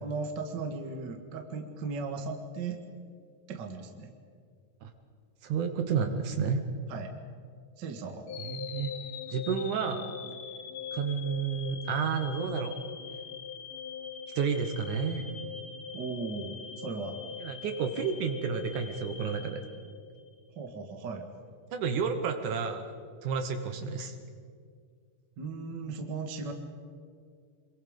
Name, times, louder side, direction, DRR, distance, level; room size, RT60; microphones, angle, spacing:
voice 1, 0.0-2.8 3.5-4.1 6.9-7.1 7.8-8.3 15.9-17.2 20.6-21.3 25.4-26.5, right 4 dB, 40° right, 5 dB, 1.9 m, -37 dB
voice 2, 5.4-6.7 8.4-8.9 9.3-10.1 10.9-12.7 14.4-15.3 17.4-19.6 21.7-22.9 23.2-24.2, right 6 dB, 70° right, 6 dB, 2.5 m, -31 dB
sound 1, 8.3-20.4, left 7 dB, 65° left, 1.4 m, -42 dB
26.5 x 22.5 x 5.2 m, 2.2 s
omnidirectional pair, 3.8 m